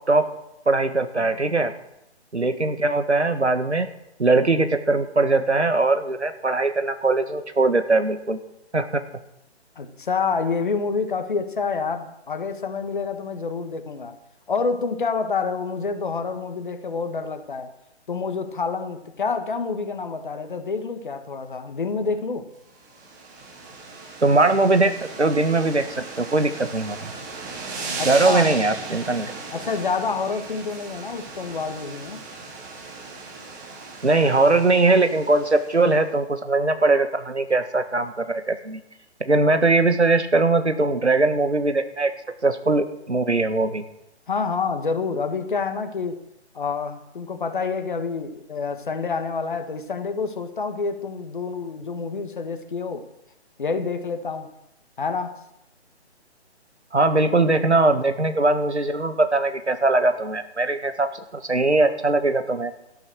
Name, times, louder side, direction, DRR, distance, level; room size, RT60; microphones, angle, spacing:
voice 1, 0.6-1.7 2.3-3.9 4.2-8.4 8.7-9.0 24.2-24.9 25.2-27.1 28.0-29.3 34.0-38.8 39.2-42.1 42.4-43.8 56.9-62.7, right 2 dB, 80° right, 9 dB, 1.8 m, -20 dB
voice 2, 9.7-14.1 14.5-17.7 18.1-22.4 28.0-28.5 29.5-32.2 44.3-46.2 46.5-53.0 53.6-54.5 55.0-55.4, left 4 dB, 45° left, 8 dB, 1.7 m, -28 dB
sound 1, 22.7-36.0, right 3 dB, 15° right, 2.1 m, -37 dB
13.5 x 11.5 x 6.5 m, 0.84 s
figure-of-eight pair, 140°, 34 cm